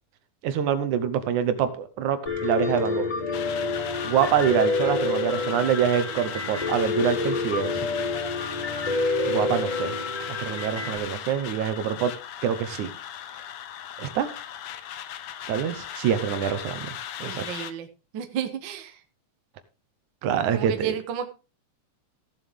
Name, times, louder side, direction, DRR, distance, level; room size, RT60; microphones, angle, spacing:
voice 1, 0.4-3.1 4.0-7.8 9.2-10.0 10.4-12.1 12.4-12.9 14.0-14.3 15.5-17.5 20.2-21.0, right 9 dB, 80° right, 11 dB, 2.5 m, -25 dB
Piano, 2.3-11.0, left 3 dB, 15° left, 3.2 m, -28 dB
sound 1, 3.3-17.7, left 10 dB, 70° left, 1.4 m, -37 dB
voice 2, 17.2-17.9 18.1-19.0 20.5-21.2, right 9 dB, 55° right, 8 dB, 1.4 m, -32 dB
16.0 x 7.4 x 3.6 m, 0.31 s
omnidirectional pair, 3.4 m